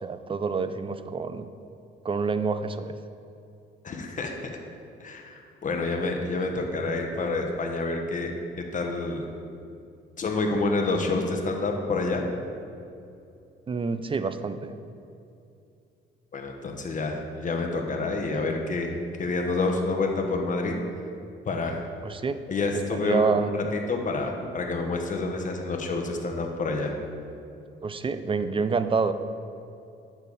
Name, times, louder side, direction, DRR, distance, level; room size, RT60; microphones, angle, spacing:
voice 1, 0.0-1.5 2.0-3.0 13.7-14.8 22.0-22.4 22.9-23.5 27.8-29.1, right 4 dB, 25° right, 11 dB, 0.5 m, -27 dB
voice 2, 3.8-4.6 5.0-8.3 8.7-9.2 10.2-12.2 16.3-18.9 19.2-20.8 21.4-21.9 22.5-26.9, left 3 dB, 40° left, 2 dB, 1.2 m, -28 dB
9.6 x 7.2 x 4.1 m, 2.6 s
cardioid pair, 90°, 20 cm